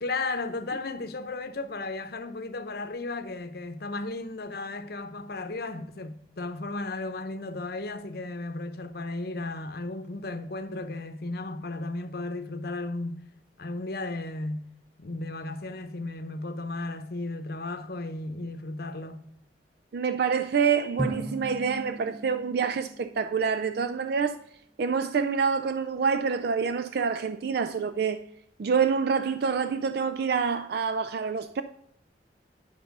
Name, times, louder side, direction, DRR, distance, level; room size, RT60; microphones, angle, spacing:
voice 1, 0.0-13.2 13.6-14.6 15.0-19.2, left 2 dB, 60° left, 0.8 m, -34 dB
voice 2, 19.9-24.4 24.8-28.2 28.6-31.6, right 6 dB, 60° right, 0.4 m, -27 dB
Drum, 21.0-23.7, right 1 dB, ahead, 0.8 m, -37 dB
10.5 x 5.4 x 5.3 m
head